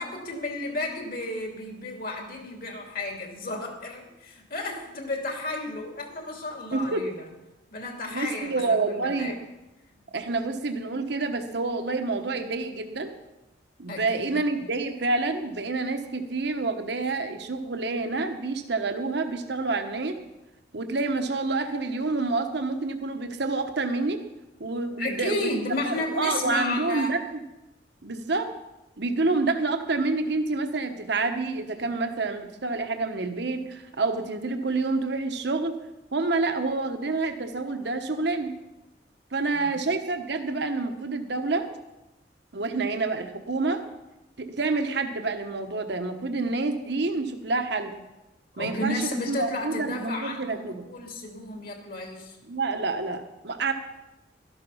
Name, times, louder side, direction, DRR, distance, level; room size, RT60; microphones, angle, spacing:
voice 1, 0.0-7.3 7.7-9.3 13.9-14.3 25.0-27.1 31.7-31.8 39.5-39.8 48.6-52.4, left 2 dB, 55° left, 2 dB, 2.8 m, -33 dB
voice 2, 8.1-9.4 10.1-13.2 13.8-20.1 20.7-24.2 24.6-25.5 25.9-27.2 28.0-28.5 29.0-35.7 36.1-38.5 39.3-41.7 42.5-43.8 44.4-47.9 48.6-48.9 49.3-50.9 52.5-53.7, right 3 dB, 70° right, 6 dB, 1.2 m, -28 dB
13.0 x 11.5 x 5.7 m, 0.97 s
head